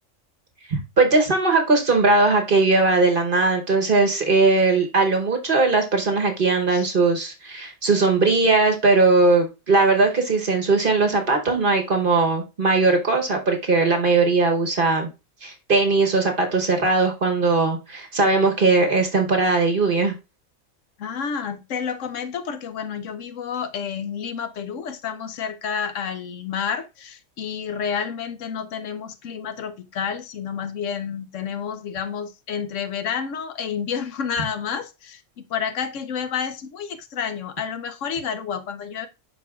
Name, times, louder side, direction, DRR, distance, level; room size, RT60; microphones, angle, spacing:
voice 1, 0.7-15.1 15.4-20.1, right 3 dB, 45° right, 1.0 m, -19 dB
voice 2, 21.0-39.1, left 7 dB, 70° left, 1.0 m, -30 dB
11.5 x 4.3 x 2.3 m
omnidirectional pair, 1.4 m